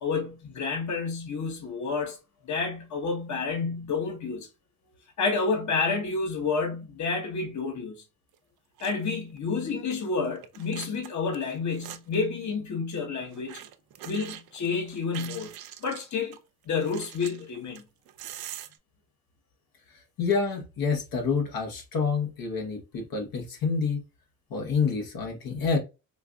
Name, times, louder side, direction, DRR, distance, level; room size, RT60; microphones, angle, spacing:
voice 1, 0.0-2.2 2.4-4.5 5.2-8.0 8.8-13.6 14.0-15.5 15.8-16.4 16.7-17.8, left 4 dB, 55° left, 1.0 m, -29 dB
sound 1, 8.3-8.4 8.8-9.1 9.4-9.5 10.3-12.3 13.3-16.4 16.8-18.8, right 11 dB, 85° right, 0.5 m, -43 dB
voice 2, 19.9-24.0 24.5-25.8, left 5 dB, 75° left, 1.0 m, -28 dB
4.5 x 2.5 x 2.2 m
cardioid pair, 75°, 35 cm